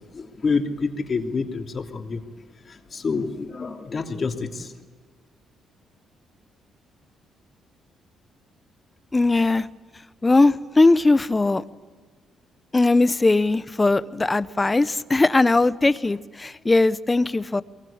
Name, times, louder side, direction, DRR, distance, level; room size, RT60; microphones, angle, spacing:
voice 1, 0.1-2.2 2.7-4.7, left 4 dB, 40° left, 3.0 m, -27 dB
voice 2, 9.1-9.7 10.2-11.6 12.7-17.6, left 2 dB, 20° left, 0.9 m, -19 dB
23.5 x 22.0 x 8.8 m
cardioid pair, 90°, 0 cm